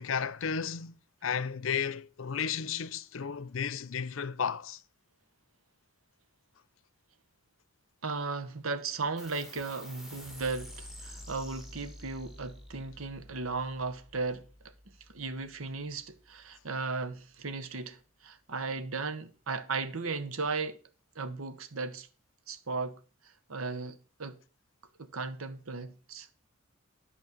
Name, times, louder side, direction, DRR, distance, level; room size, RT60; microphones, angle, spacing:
voice 1, 0.0-4.8, left 6 dB, 75° left, 0.6 m, -33 dB
voice 2, 8.0-14.5 14.9-20.8 21.1-22.1 22.5-24.4 25.0-26.3, right 4 dB, 90° right, 1.1 m, -36 dB
sound 1, 9.2-16.1, left 1 dB, ahead, 1.5 m, -49 dB
10.5 x 4.3 x 7.4 m
head